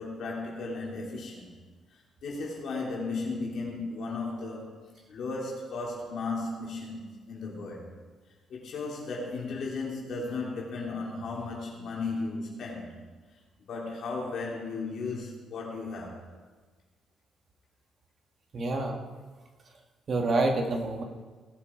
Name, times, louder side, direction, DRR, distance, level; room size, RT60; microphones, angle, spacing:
voice 1, 0.0-1.5 1.9-4.8 5.1-7.9 8.5-12.9 13.7-16.2, left 3 dB, 65° left, -3 dB, 3.3 m, -35 dB
voice 2, 18.5-19.0 20.1-21.0, right 2 dB, 45° right, 3 dB, 1.9 m, -27 dB
18.0 x 7.5 x 4.5 m, 1.4 s
cardioid pair, 90°, 0 cm